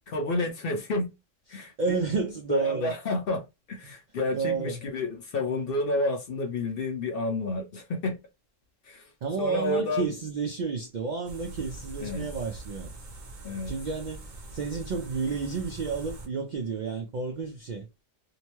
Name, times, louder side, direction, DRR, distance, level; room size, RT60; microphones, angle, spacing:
voice 1, 0.1-1.1 1.5-1.7 2.5-8.2 8.9-9.0 9.4-10.1 12.0-12.3 13.4-13.7, left 2 dB, 60° left, 0.6 m, -30 dB
voice 2, 1.5-2.9 4.3-4.8 9.2-12.9 13.7-17.9, right 5 dB, 70° right, 0.4 m, -31 dB
sound 1, 11.3-16.3, right 2 dB, 45° right, 0.7 m, -42 dB
2.7 x 2.2 x 2.9 m
omnidirectional pair, 1.3 m